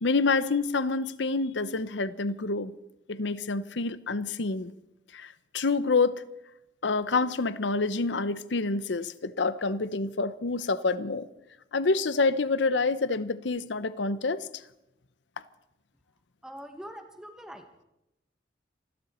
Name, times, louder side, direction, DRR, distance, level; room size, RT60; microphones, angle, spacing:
voice 1, 0.0-2.7 3.1-4.7 5.1-6.2 6.8-11.3 11.7-14.5, left 3 dB, 85° left, 0.8 m, -27 dB
voice 2, 16.4-17.7, equal, 5° right, 1.3 m, -43 dB
27.5 x 12.0 x 4.4 m
head